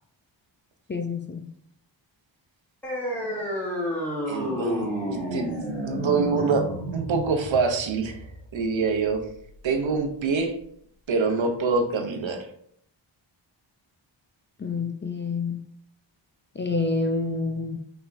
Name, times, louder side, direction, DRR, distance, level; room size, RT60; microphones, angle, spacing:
voice 1, 0.9-1.4 14.6-15.6 16.6-17.8, left 3 dB, 25° left, 5 dB, 0.3 m, -28 dB
sound 1, 2.8-9.8, equal, 5° left, 1.2 m, -31 dB
voice 2, 4.3-5.5 5.8-6.7 6.9-9.2 9.6-10.6 11.1-12.5, right 4 dB, 80° right, 5 dB, 0.9 m, -25 dB
5.6 x 3.5 x 2.6 m, 0.65 s
wide cardioid pair, 150°, 46 cm